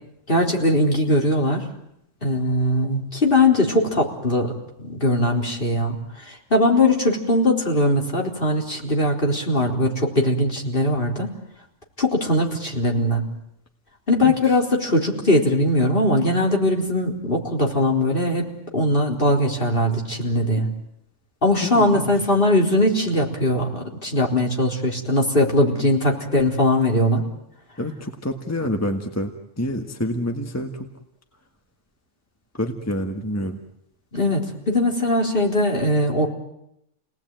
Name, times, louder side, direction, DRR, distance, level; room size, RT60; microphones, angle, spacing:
voice 1, 0.3-1.7 2.2-4.5 4.8-11.4 12.0-13.3 14.1-20.7 21.4-27.2 34.1-36.3, left 1 dB, 45° left, 0 dB, 4.3 m, -20 dB
voice 2, 21.7-22.1 27.8-30.9 32.6-33.6, equal, 15° left, 4 dB, 1.6 m, -27 dB
29.5 x 19.0 x 9.2 m, 0.81 s
omnidirectional pair, 1.3 m